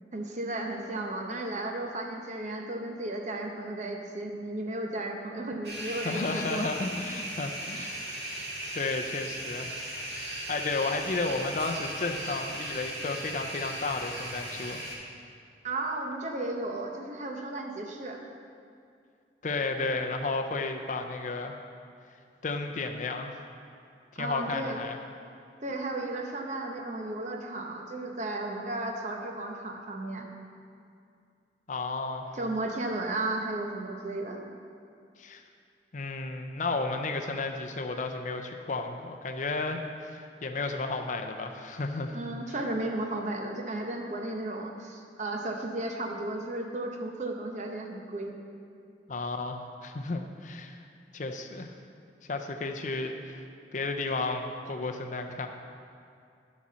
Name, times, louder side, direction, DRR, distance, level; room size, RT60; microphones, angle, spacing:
voice 1, 0.1-6.7 15.6-18.2 24.2-24.8 25.6-30.3 32.3-34.4 42.1-48.4, right 2 dB, 40° right, 2 dB, 0.8 m, -34 dB
sound 1, 5.6-14.9, right 1 dB, 70° right, 1.9 m, -37 dB
voice 2, 5.9-8.2 8.7-14.9 19.4-21.6 22.4-23.4 24.1-25.0 31.7-32.3 35.2-35.4 35.9-42.2 49.1-50.8 51.1-51.7 52.3-53.4 53.7-55.5, left 3 dB, 45° left, 5 dB, 0.5 m, -33 dB
11.5 x 4.2 x 6.3 m, 2.4 s
head